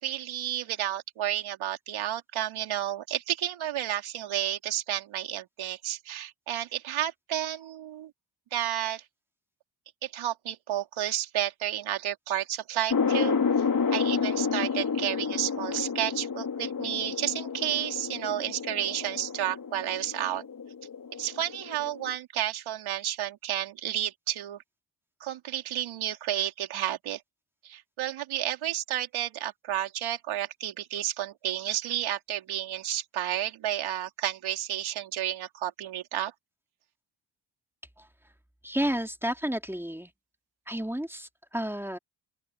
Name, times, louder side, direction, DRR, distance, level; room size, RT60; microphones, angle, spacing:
voice 1, 0.0-8.1 8.5-9.0 10.0-13.4 13.9-20.4 21.2-24.6 25.2-27.2 27.6-36.3, right 12 dB, 85° right, 4.4 m, -31 dB
sound 1, 12.9-22.1, left 5 dB, 45° left, 2.9 m, -30 dB
voice 2, 38.6-40.1 40.7-42.0, equal, 5° right, 2.8 m, -31 dB
open air
cardioid pair, 65°, 47 cm